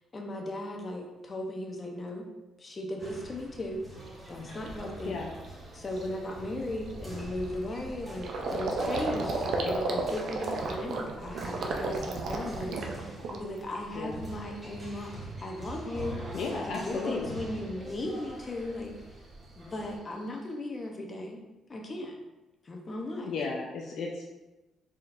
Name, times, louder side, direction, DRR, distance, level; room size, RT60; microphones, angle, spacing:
voice 1, 0.1-2.3 2.6-3.9 4.3-5.2 5.7-18.9 19.6-21.4 21.7-22.2 22.6-23.3, left 1 dB, 35° left, 1 dB, 0.7 m, -37 dB
sound 1, 3.0-20.0, right 1 dB, 10° right, 1.4 m, -45 dB
Gurgling, 4.1-4.2 4.7-4.9 5.3-5.5 5.7-13.8 14.1-14.7, right 3 dB, 65° right, 0.5 m, -34 dB
voice 2, 16.3-17.4 23.2-24.2, left 4 dB, 70° left, 0 dB, 0.5 m, -34 dB
4.3 x 3.7 x 2.5 m, 1.1 s
cardioid pair, 90°, 0 cm